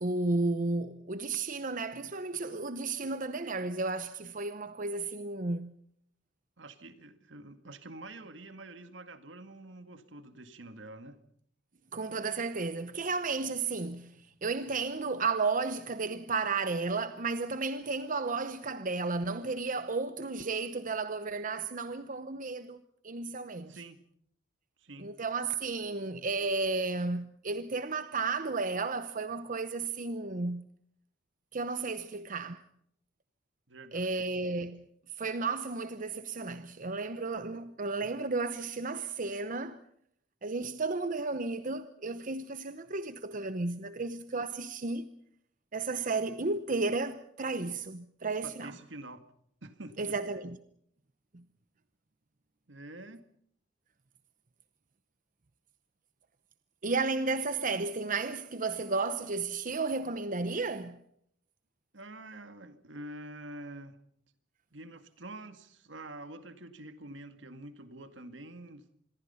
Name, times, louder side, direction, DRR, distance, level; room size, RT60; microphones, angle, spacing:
voice 1, 0.0-5.7 11.9-22.8 23.0-23.8 25.0-30.7 31.5-32.6 33.9-34.9 35.2-39.8 40.4-45.1 45.7-48.7 50.0-50.6 51.3-51.4 56.8-61.0, right 3 dB, 45° right, 0.9 m, -33 dB
voice 2, 6.6-11.2 23.7-24.0 24.8-25.1 33.7-34.1 48.4-49.2 49.6-50.1 52.7-53.3 61.9-64.0 64.7-68.9, right 2 dB, 75° right, 2.0 m, -47 dB
26.5 x 22.0 x 5.7 m
head